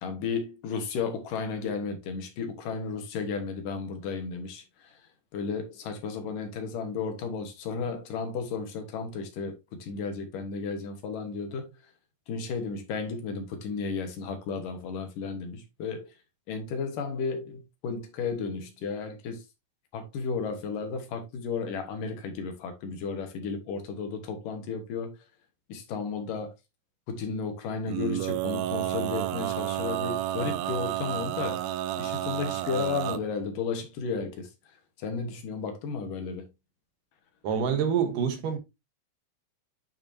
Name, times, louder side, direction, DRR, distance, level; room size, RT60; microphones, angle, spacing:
voice 1, 0.0-4.9 5.3-11.7 12.3-16.1 16.5-19.4 19.9-25.1 25.7-26.5 27.1-31.6 32.0-34.5 35.0-36.5, left 5 dB, 70° left, 2.8 m, -33 dB
Male singing, 27.9-33.2, right 13 dB, 90° right, 2.4 m, -31 dB
voice 2, 37.4-38.6, right 7 dB, 70° right, 2.7 m, -26 dB
8.8 x 5.9 x 2.7 m
omnidirectional pair, 4.2 m